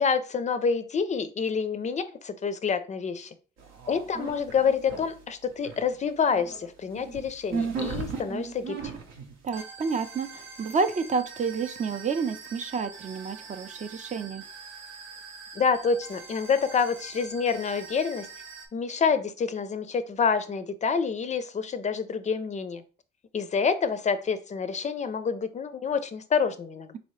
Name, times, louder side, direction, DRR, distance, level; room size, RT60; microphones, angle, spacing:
voice 1, 0.0-3.3 3.9-8.9 15.5-18.3 18.7-22.8 23.3-27.0, left 5 dB, 35° left, 0.4 m, -27 dB
sound 1, 3.6-5.2 5.5-18.7, right 5 dB, 85° right, 0.8 m, -39 dB
voice 2, 9.4-14.4, right 5 dB, 40° right, 0.4 m, -29 dB
4.0 x 2.7 x 3.1 m
cardioid pair, 90°, 20 cm